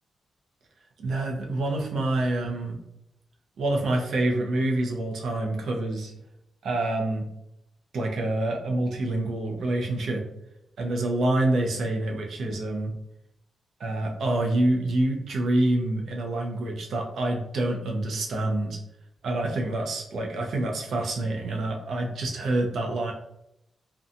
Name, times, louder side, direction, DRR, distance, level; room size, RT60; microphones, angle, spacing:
voice 1, 1.0-2.8 3.6-6.1 6.6-7.2 7.9-10.2 10.8-12.9 13.8-18.8 19.2-23.1, right 2 dB, 75° right, 1 dB, 0.5 m, -27 dB
2.6 x 2.2 x 2.5 m, 0.82 s
wide cardioid pair, 165°, 0 cm